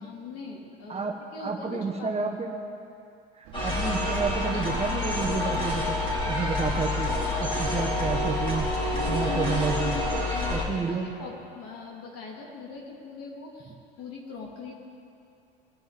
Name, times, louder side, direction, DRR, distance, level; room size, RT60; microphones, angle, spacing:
voice 1, 0.0-2.1 8.9-14.7, left 3 dB, 45° left, -1 dB, 3.2 m, -40 dB
voice 2, 1.4-2.5 3.4-6.0 6.2-7.1 7.4-8.7 9.1-10.0 10.5-11.1, right 5 dB, 20° right, 2 dB, 1.1 m, -30 dB
sound 1, 3.4-10.3, right 6 dB, 55° right, 1.4 m, -45 dB
sound 2, 3.5-10.6, left 2 dB, 15° left, 3.6 m, -28 dB
21.5 x 10.0 x 4.2 m, 2.6 s
hypercardioid pair, 80°, 33 cm